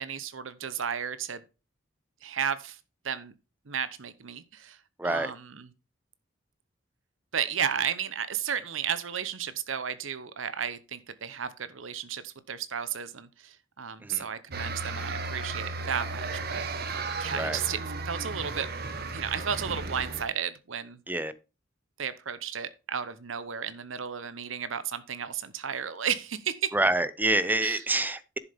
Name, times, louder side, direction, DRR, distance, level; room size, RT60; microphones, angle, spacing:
voice 1, 0.0-1.4 2.2-2.8 3.0-3.3 3.7-4.8 5.0-5.7 7.3-16.9 17.2-17.8 18.1-18.7 19.1-21.0 22.0-26.7 27.6-27.8, right 8 dB, 90° right, 0.9 m, -33 dB
voice 2, 5.0-5.3 14.0-14.3 17.3-17.6 21.1-21.3 26.7-28.4, right 2 dB, 10° right, 0.6 m, -27 dB
sound 1, 14.5-20.2, right 3 dB, 50° right, 1.3 m, -34 dB
11.0 x 7.0 x 3.5 m
head